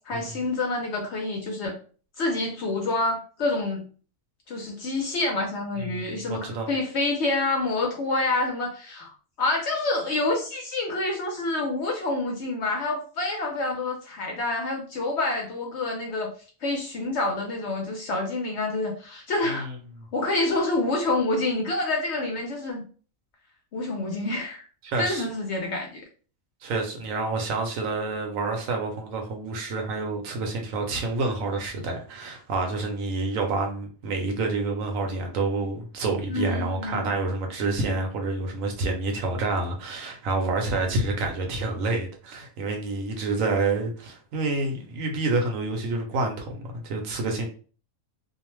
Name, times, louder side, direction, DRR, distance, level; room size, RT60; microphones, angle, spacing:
voice 1, 0.1-1.7 2.2-3.8 4.5-16.3 16.6-19.7 20.1-22.8 23.7-24.6 25.0-26.0 36.3-37.1, left 2 dB, 65° left, 0.7 m, -27 dB
voice 2, 5.8-6.7 19.4-19.8 24.8-25.3 26.6-47.5, right 3 dB, 70° right, 1.0 m, -28 dB
2.6 x 2.0 x 3.0 m
omnidirectional pair, 1.5 m